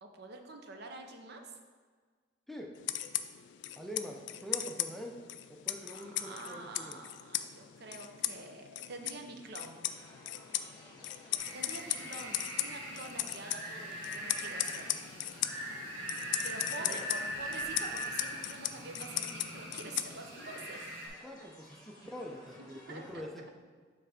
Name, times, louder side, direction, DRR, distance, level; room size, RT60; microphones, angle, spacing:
voice 1, 0.0-1.6 5.9-9.9 11.5-14.9 16.4-20.9 21.4-21.5 22.6-23.3, right 3 dB, 60° right, 4 dB, 0.7 m, -47 dB
sound 1, 2.8-20.5, left 13 dB, 65° left, 0.3 m, -38 dB
voice 2, 3.8-5.2 5.5-7.1 16.8-17.1 21.2-23.4, equal, ahead, 0 dB, 0.5 m, -44 dB
sound 2, 9.8-23.2, left 1 dB, 20° left, 1.6 m, -56 dB
sound 3, 11.4-21.1, right 1 dB, 80° right, 1.7 m, -41 dB
6.9 x 3.3 x 5.0 m, 1.5 s
head